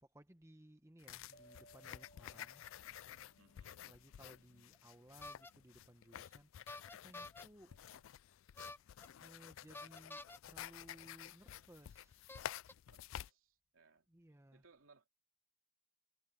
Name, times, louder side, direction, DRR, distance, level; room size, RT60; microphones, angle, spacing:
voice 1, 0.0-2.7 3.1-3.3 3.8-7.8 8.7-12.4 14.1-14.7, right 1 dB, 15° right, 1.0 m, -62 dB
sound 1, 1.0-13.3, left 11 dB, 75° left, 0.3 m, -52 dB
sound 2, 1.3-4.3, right 1 dB, 50° left, 2.2 m, -66 dB
voice 2, 3.4-3.9 7.7-8.0 12.9-14.1 14.5-15.1, right 4 dB, 80° right, 2.8 m, -68 dB
sound 3, 5.2-5.5 6.7-7.4 8.6-9.1 9.7-10.4 11.4-11.5 12.3-12.7, left 2 dB, 10° left, 0.5 m, -50 dB
head